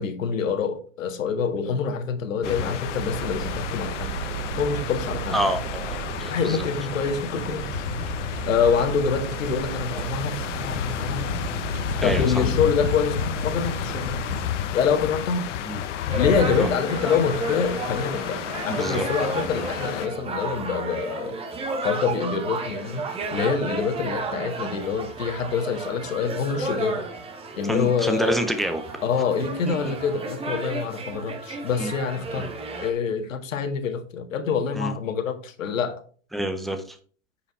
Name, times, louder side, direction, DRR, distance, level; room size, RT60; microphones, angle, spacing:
voice 1, 0.0-4.1 4.6-5.4 6.3-7.9 8.3-11.4 12.0-14.2 14.7-15.5 16.1-21.4 21.8-27.1 27.6-28.4 29.0-32.5 32.8-36.0, left 6 dB, 80° left, 1.7 m, -26 dB
sound 1, 2.4-20.1, left 9 dB, 65° left, 1.0 m, -31 dB
sound 2, 2.8-14.5, right 13 dB, 75° right, 0.5 m, -35 dB
voice 2, 5.3-6.6 12.0-12.4 15.7-15.8 16.6-16.7 18.7-19.1 19.4-19.6 27.7-28.8 29.7-29.9 31.8-31.9 34.7-34.9 36.3-37.0, equal, ahead, 0.5 m, -27 dB
sound 3, 16.1-32.9, right 3 dB, 15° right, 1.2 m, -33 dB
8.6 x 5.1 x 4.7 m
hypercardioid pair, 140°, 38 cm